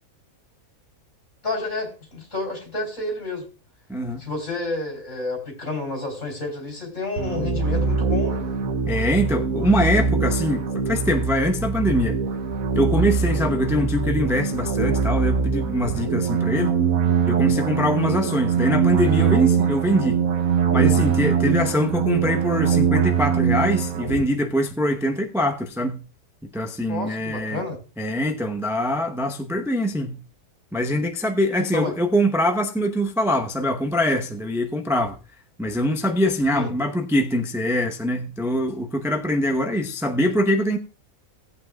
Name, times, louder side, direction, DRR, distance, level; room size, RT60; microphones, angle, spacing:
voice 1, 1.4-3.5 4.2-8.4 26.9-27.8 31.7-31.9 36.5-36.7, left 2 dB, 50° left, 4.2 m, -30 dB
voice 2, 3.9-4.2 8.9-12.2 12.7-16.7 17.3-20.2 20.7-26.0 26.5-27.6 28.0-30.2 30.7-35.2 35.6-40.8, equal, 5° right, 0.5 m, -23 dB
sound 1, 7.2-24.2, right 6 dB, 65° right, 1.2 m, -22 dB
18.0 x 8.4 x 2.3 m
omnidirectional pair, 1.7 m